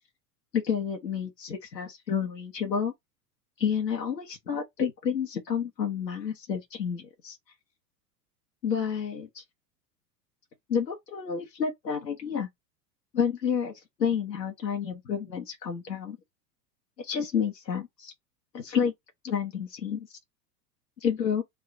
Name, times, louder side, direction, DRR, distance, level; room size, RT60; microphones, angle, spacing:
voice 1, 0.5-2.9 3.6-7.4 8.6-9.4 10.7-12.5 13.1-16.2 17.0-18.1 18.5-18.9 19.2-20.1 21.0-21.4, left 7 dB, 85° left, 1.0 m, -30 dB
3.6 x 2.3 x 3.8 m
figure-of-eight pair, 90°, 49 cm